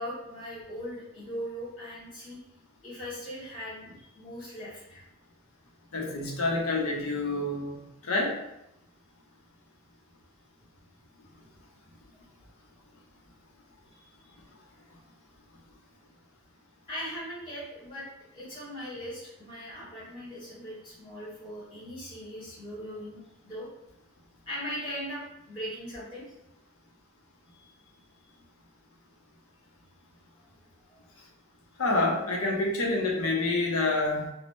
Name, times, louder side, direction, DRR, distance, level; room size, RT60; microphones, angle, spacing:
voice 1, 0.0-2.4 2.8-5.0 14.0-14.3 16.9-23.7 24.4-26.2 27.5-27.9 30.4-30.5 30.9-31.0, equal, 25° left, -8 dB, 1.3 m, -40 dB
voice 2, 5.9-7.8 8.0-8.4 31.8-34.3, left 2 dB, 85° left, 0 dB, 0.6 m, -27 dB
2.5 x 2.1 x 3.4 m, 0.84 s
head